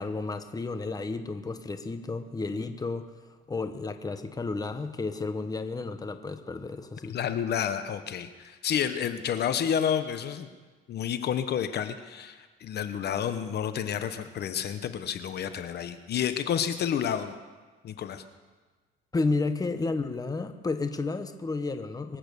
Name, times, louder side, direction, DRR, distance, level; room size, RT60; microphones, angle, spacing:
voice 1, 0.0-3.1 3.5-7.2 19.1-22.2, left 3 dB, 20° left, 9 dB, 1.2 m, -32 dB
voice 2, 7.1-10.5 10.9-17.4 17.8-18.2, left 8 dB, 55° left, 10 dB, 1.0 m, -30 dB
23.5 x 8.8 x 7.0 m, 1.3 s
cardioid pair, 100°, 21 cm